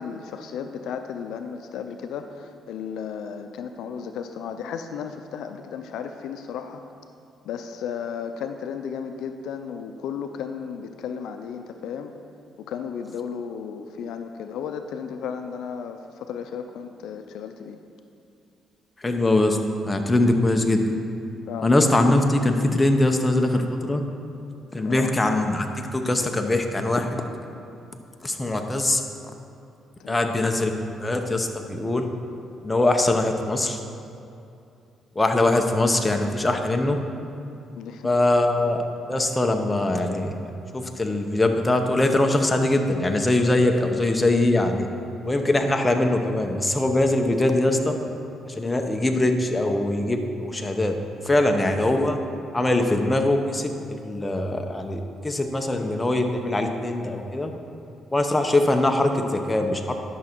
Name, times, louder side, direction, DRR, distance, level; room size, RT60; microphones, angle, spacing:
voice 1, 0.0-6.8 7.4-12.1 12.6-17.8 21.5-21.7 24.8-25.1 30.0-30.3 37.8-38.1 48.6-48.8, left 7 dB, 85° left, 7 dB, 0.5 m, -34 dB
voice 2, 19.0-19.6 19.9-20.8 21.6-24.0 24.7-25.7 25.9-27.2 28.2-29.0 30.1-30.7 31.0-32.0 32.6-33.8 35.2-37.0 38.0-38.8 39.1-40.3 40.7-44.9 45.2-48.0 48.5-51.0 51.2-52.2 52.5-57.5 58.1-59.9, left 2 dB, 15° left, 4 dB, 0.8 m, -22 dB
11.0 x 6.3 x 4.5 m, 2.6 s
cardioid pair, 90°, 0 cm